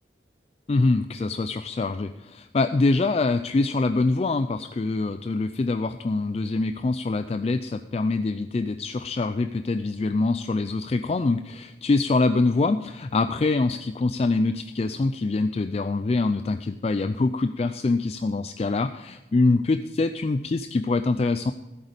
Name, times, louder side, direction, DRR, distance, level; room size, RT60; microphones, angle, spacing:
voice 1, 0.7-21.5, left 3 dB, 35° left, 9 dB, 0.3 m, -24 dB
14.0 x 8.1 x 5.1 m, 1.0 s
head